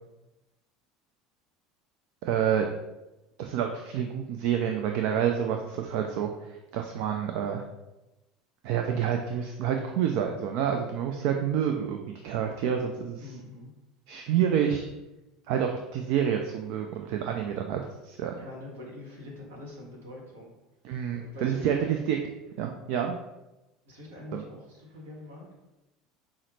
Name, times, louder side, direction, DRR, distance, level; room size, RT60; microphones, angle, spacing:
voice 1, 2.2-2.7 3.4-7.6 8.6-13.3 14.1-14.9 15.5-18.4 20.8-22.2 22.6-23.2 24.3-24.4, right 8 dB, 65° right, 4 dB, 0.3 m, -28 dB
voice 2, 13.2-13.7 18.4-20.5 21.1-22.1 23.8-25.5, left 1 dB, 80° right, -2 dB, 1.2 m, -44 dB
5.5 x 2.0 x 3.1 m, 1.0 s
hypercardioid pair, 75°, 0 cm